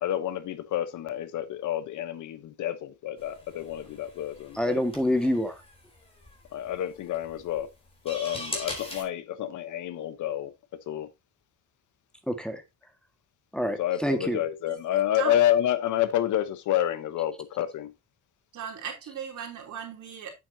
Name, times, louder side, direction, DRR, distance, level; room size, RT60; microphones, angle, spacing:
voice 1, 0.0-4.8 6.5-7.7 8.0-10.5 10.9-11.1 13.8-17.9, left 11 dB, 80° left, 1.1 m, -29 dB
sound 1, 3.2-9.0, left 2 dB, 20° left, 4.0 m, -41 dB
voice 2, 4.6-5.6 12.3-12.6 13.5-14.4, equal, 5° left, 1.8 m, -27 dB
voice 3, 18.5-20.3, right 8 dB, 70° right, 3.4 m, -37 dB
8.6 x 7.6 x 2.8 m
cardioid pair, 90°, 30 cm